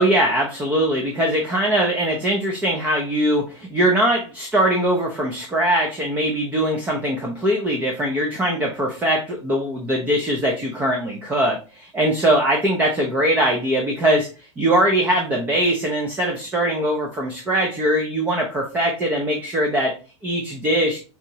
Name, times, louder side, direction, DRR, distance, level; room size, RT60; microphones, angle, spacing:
voice 1, 0.0-19.9 20.2-21.0, right 1 dB, 10° right, 1 dB, 0.4 m, -21 dB
4.6 x 2.9 x 2.7 m, 0.35 s
supercardioid pair, 165°, 16 cm